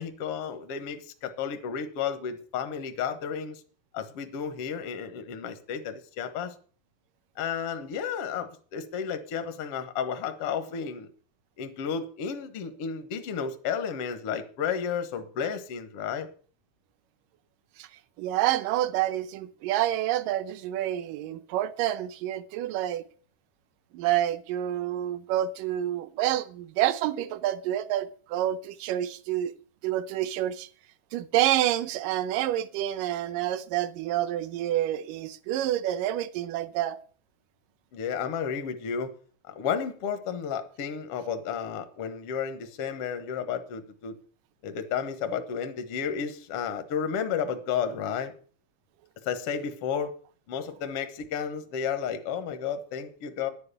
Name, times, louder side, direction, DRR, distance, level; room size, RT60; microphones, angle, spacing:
voice 1, 0.0-3.6 3.9-6.5 7.4-11.1 11.6-16.3 37.9-39.1 39.5-44.2 44.6-48.3 49.2-50.1 50.5-53.5, left 7 dB, 65° left, 1.5 m, -32 dB
voice 2, 18.2-23.0 23.9-29.5 29.8-30.7 31.1-37.0, right 13 dB, 75° right, 2.3 m, -28 dB
10.5 x 9.6 x 6.7 m
omnidirectional pair, 4.2 m